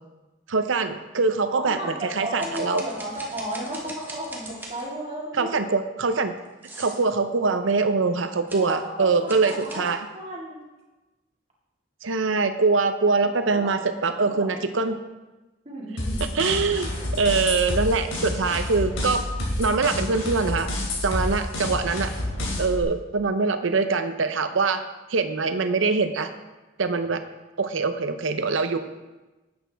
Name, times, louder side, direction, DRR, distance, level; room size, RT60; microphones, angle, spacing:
voice 1, 0.5-2.8 5.4-6.3 6.8-10.0 12.0-15.0 16.3-19.2 19.6-20.7 21.0-22.1 22.6-24.8 25.1-26.3 26.8-27.2 27.6-28.8, right 4 dB, 75° right, 9 dB, 0.7 m, -23 dB
voice 2, 1.6-5.5 8.5-10.6 13.6-13.9 14.2-14.9 15.6-16.4, right 1 dB, 30° right, -3 dB, 2.2 m, -34 dB
sound 1, 2.4-5.0 6.4-7.1 8.5-8.8 9.3-10.0, right 1 dB, 10° right, 1.2 m, -41 dB
sound 2, 16.0-22.8, left 1 dB, 80° left, 3.0 m, -29 dB
11.0 x 8.1 x 3.5 m, 1.1 s
head